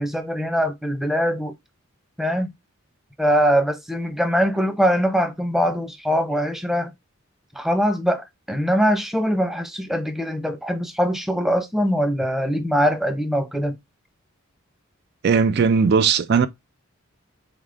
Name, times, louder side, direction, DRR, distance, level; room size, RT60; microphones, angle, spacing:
voice 1, 0.0-1.5 2.2-2.5 3.2-6.9 7.6-13.7, equal, ahead, 0.6 m, -22 dB
voice 2, 15.2-16.5, right 5 dB, 50° right, 0.4 m, -18 dB
4.1 x 3.5 x 3.6 m
head